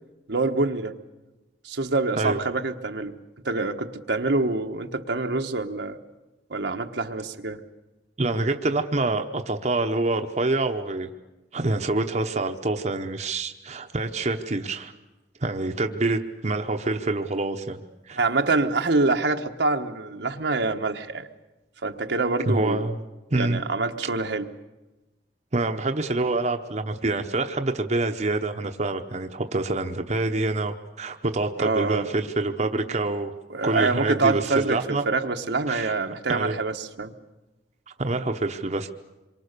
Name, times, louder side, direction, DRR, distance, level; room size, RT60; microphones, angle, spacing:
voice 1, 0.3-0.9 1.6-3.2 3.4-6.0 6.5-7.6 18.2-21.3 21.8-22.9 23.4-24.5 31.6-32.1 33.5-37.1, right 3 dB, 80° right, 5 dB, 1.3 m, -26 dB
voice 2, 8.2-11.1 11.5-14.9 15.4-17.8 18.1-18.2 22.5-23.0 23.3-23.6 25.5-33.3 33.6-35.0 35.7-35.9 36.3-36.6 38.0-38.9, right 2 dB, 40° right, 5 dB, 0.9 m, -26 dB
26.5 x 23.5 x 6.8 m, 1.1 s
head